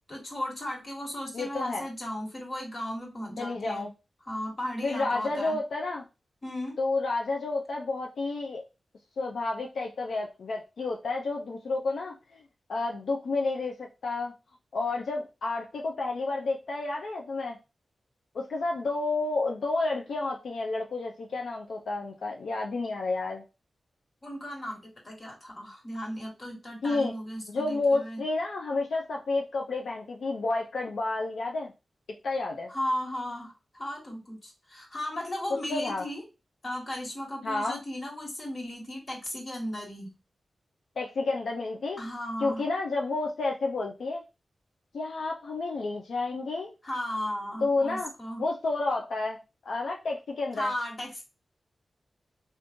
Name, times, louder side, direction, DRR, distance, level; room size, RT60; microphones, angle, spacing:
voice 1, 0.1-3.9 4.2-5.6 6.4-6.8 24.2-28.2 32.7-36.2 36.6-40.1 42.0-42.6 46.8-48.4 50.5-51.2, left 1 dB, 45° left, -1 dB, 1.6 m, -35 dB
voice 2, 1.3-1.9 3.4-3.9 4.8-6.0 6.8-8.6 9.2-12.4 12.7-14.3 14.7-17.6 18.3-23.4 26.8-27.1 27.5-31.7 32.2-32.7 35.7-36.1 37.4-37.8 41.0-42.0 42.4-44.2 44.9-46.7 47.6-48.1 48.4-49.4 49.7-50.7, left 3 dB, 85° left, 0 dB, 0.4 m, -30 dB
3.6 x 2.5 x 2.5 m, 0.28 s
cardioid pair, 60°, 0 cm